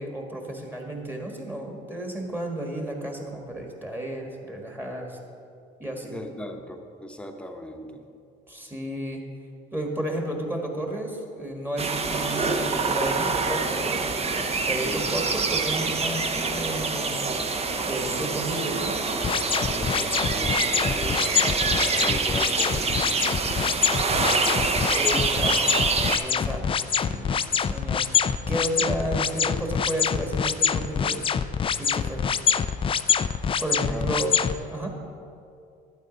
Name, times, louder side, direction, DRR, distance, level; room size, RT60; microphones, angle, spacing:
voice 1, 0.0-5.2 5.8-6.1 8.5-9.2 9.7-17.1 17.8-19.0 24.9-31.3 31.8-32.2 33.6-34.4 34.7-34.9, right 1 dB, 10° right, 1 dB, 1.6 m, -32 dB
voice 2, 6.1-8.0 14.8-15.1 19.7-22.9 24.1-24.7 33.9-34.1, left 1 dB, 5° left, 4 dB, 1.0 m, -37 dB
sound 1, 11.8-26.2, right 4 dB, 30° right, 0.8 m, -26 dB
sound 2, 19.2-34.5, left 7 dB, 25° left, 0.4 m, -25 dB
12.0 x 8.9 x 4.0 m, 2.5 s
cardioid pair, 95°, 20 cm